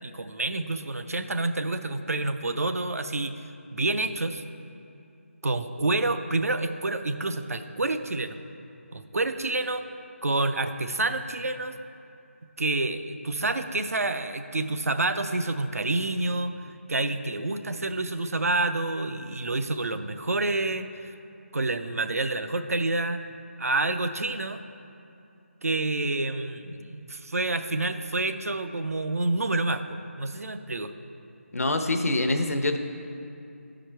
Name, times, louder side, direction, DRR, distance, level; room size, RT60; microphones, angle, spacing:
voice 1, 0.0-3.3 3.7-4.4 5.4-8.4 8.9-9.9 10.2-11.8 12.6-16.5 16.9-21.1 21.5-23.2 23.6-24.6 25.6-29.8 30.2-30.9, right 2 dB, 85° right, 9 dB, 0.5 m, -28 dB
voice 2, 31.5-32.8, left 2 dB, 85° left, 6 dB, 0.7 m, -25 dB
10.5 x 5.0 x 4.4 m, 2.6 s
figure-of-eight pair, 165°, 8 cm